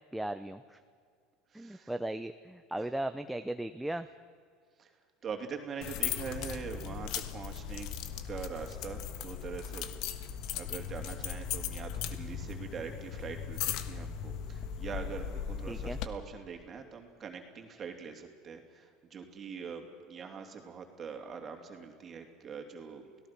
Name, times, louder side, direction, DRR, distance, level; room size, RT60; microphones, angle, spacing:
voice 1, 0.1-0.8 1.5-4.1 15.7-16.0, right 1 dB, 5° right, 9 dB, 0.7 m, -37 dB
voice 2, 1.5-1.9 2.8-2.9 4.8-4.9 5.2-7.9 8.2-23.3, right 6 dB, 30° right, 4 dB, 3.0 m, -43 dB
sound 1, 5.8-16.1, left 8 dB, 60° left, 1.4 m, -38 dB
29.5 x 18.0 x 6.0 m, 2.1 s
supercardioid pair, 125°, 0 cm